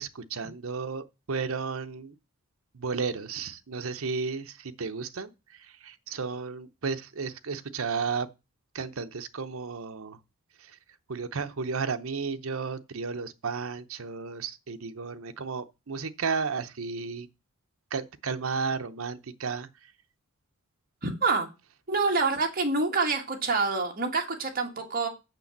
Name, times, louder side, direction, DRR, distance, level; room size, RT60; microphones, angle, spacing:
voice 1, 0.0-2.1 2.7-8.3 8.7-10.2 11.1-17.3 17.9-19.7, right 5 dB, 70° right, 0.8 m, -33 dB
voice 2, 21.0-21.5 21.9-25.1, right 3 dB, 40° right, 1.8 m, -27 dB
6.7 x 6.0 x 7.2 m
head